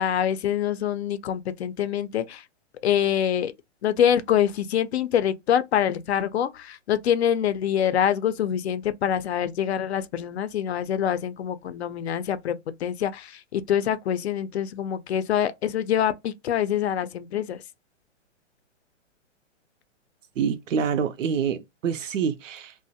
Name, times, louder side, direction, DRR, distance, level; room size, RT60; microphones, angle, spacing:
voice 1, 0.0-2.4 2.8-3.5 3.8-12.5 12.8-17.6, left 9 dB, 60° left, 0.5 m, -25 dB
voice 2, 20.4-22.7, right 7 dB, 85° right, 0.5 m, -26 dB
2.3 x 2.1 x 2.7 m
hypercardioid pair, 145°, 37 cm